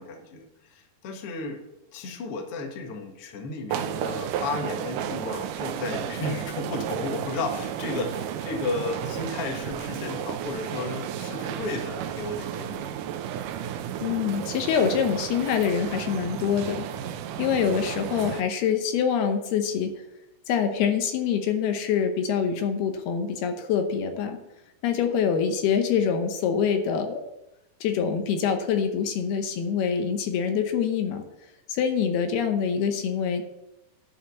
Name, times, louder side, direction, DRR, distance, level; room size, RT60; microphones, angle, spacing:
voice 1, 0.0-1.6 1.9-12.9, left 3 dB, 55° left, 3 dB, 1.7 m, -33 dB
sound 1, 3.7-18.4, right 10 dB, 85° right, 1.9 m, -33 dB
voice 2, 14.0-16.9 17.4-19.9 20.5-24.4 24.8-27.2 27.8-31.2 31.7-33.4, left 7 dB, 80° left, 6 dB, 2.9 m, -25 dB
11.5 x 5.0 x 8.2 m, 0.90 s
omnidirectional pair, 4.6 m